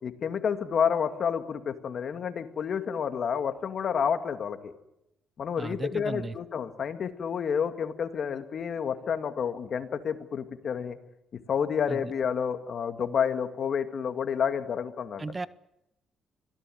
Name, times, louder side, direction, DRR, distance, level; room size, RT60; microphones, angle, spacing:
voice 1, 0.0-4.7 5.4-11.0 11.5-15.2, left 7 dB, 55° left, 8 dB, 2.2 m, -29 dB
voice 2, 5.6-6.4 11.9-12.0 15.2-15.5, right 3 dB, 25° right, 17 dB, 0.8 m, -35 dB
24.5 x 16.5 x 9.4 m, 0.88 s
cardioid pair, 90°, 0 cm